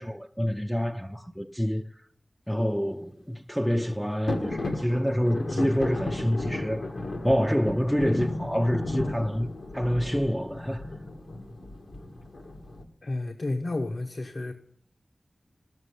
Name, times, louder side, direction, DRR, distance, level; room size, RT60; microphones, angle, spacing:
voice 1, 0.0-2.0 2.5-6.9 7.2-9.5 9.7-10.8, equal, ahead, 0.5 m, -27 dB
sound 1, 4.3-12.8, left 2 dB, 90° left, 1.7 m, -34 dB
voice 2, 13.0-14.5, left 2 dB, 70° left, 1.1 m, -31 dB
12.5 x 7.4 x 9.7 m
wide cardioid pair, 70°, 0 cm